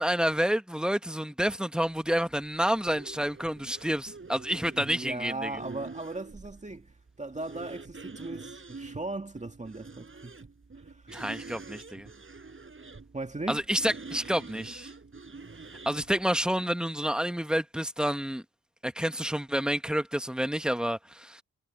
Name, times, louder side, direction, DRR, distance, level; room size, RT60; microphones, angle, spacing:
voice 1, 0.0-5.5 11.1-12.1 13.5-14.9 15.9-18.4 18.8-21.4, equal, 5° right, 1.7 m, -29 dB
sound 1, 1.8-16.6, right 4 dB, 40° right, 7.3 m, -46 dB
voice 2, 4.5-10.5 10.8-11.1 13.1-13.7, right 2 dB, 20° right, 2.1 m, -38 dB
supercardioid pair, 50°, 33 cm